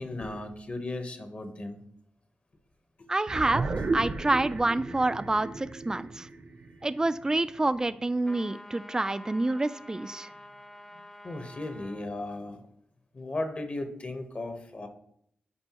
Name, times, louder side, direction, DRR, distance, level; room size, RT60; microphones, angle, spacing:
voice 1, 0.0-1.8 11.2-12.6 13.1-14.9, left 2 dB, 40° left, 7 dB, 1.0 m, -36 dB
voice 2, 3.1-3.6 3.9-6.3 6.8-10.3, right 2 dB, 20° right, 14 dB, 0.4 m, -27 dB
sound 1, 3.3-7.9, right 3 dB, 45° right, 0.7 m, -34 dB
sound 2, 8.2-12.1, left 1 dB, 15° left, 0.7 m, -48 dB
9.5 x 5.3 x 3.0 m, 0.70 s
cardioid pair, 75°, 4 cm